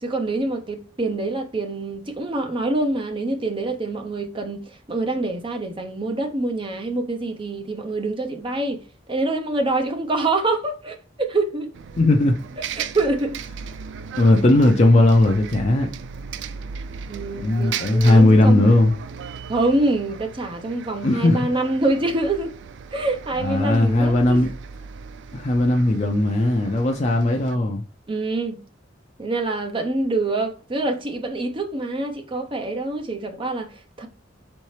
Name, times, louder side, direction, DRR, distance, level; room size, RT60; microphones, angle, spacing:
voice 1, 0.0-8.8 9.1-11.7 12.8-13.4 17.1-18.8 19.5-22.5 22.9-24.4 28.1-28.6 29.2-34.1, right 2 dB, 25° right, 0.6 m, -25 dB
Bus, 11.7-27.6, right 6 dB, 65° right, 0.3 m, -37 dB
voice 2, 12.0-12.4 14.1-15.9 17.4-19.0 21.0-21.5 23.4-24.5 25.3-27.8, left 1 dB, 35° left, 0.5 m, -17 dB
4.3 x 3.7 x 3.2 m
head